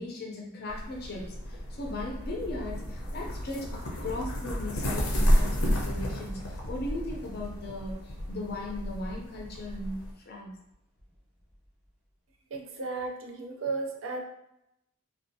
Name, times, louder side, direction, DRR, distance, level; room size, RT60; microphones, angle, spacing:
voice 1, 0.0-10.5, left 2 dB, 50° left, -1 dB, 0.4 m, -38 dB
sound 1, 0.7-10.1, equal, 90° left, 0.6 m, -31 dB
Thunder / Rain, 1.3-10.0 10.5-11.9, equal, 5° right, 0.6 m, -45 dB
voice 2, 12.5-14.2, right 3 dB, 70° right, 2 dB, 0.5 m, -34 dB
2.5 x 2.3 x 2.6 m, 0.83 s
head